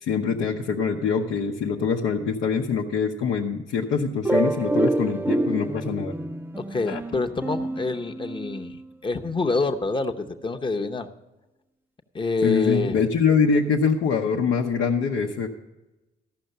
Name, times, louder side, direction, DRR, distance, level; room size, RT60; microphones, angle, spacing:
voice 1, 0.0-6.1 6.9-7.0 12.4-15.5, left 5 dB, 85° left, -1 dB, 0.8 m, -24 dB
sound 1, 4.2-8.8, right 2 dB, 10° right, 0.5 m, -27 dB
voice 2, 6.7-8.8 9.0-11.1 12.1-12.9, left 3 dB, 25° left, 6 dB, 0.8 m, -26 dB
14.0 x 5.8 x 6.6 m, 1.0 s
cardioid pair, 90°, 20 cm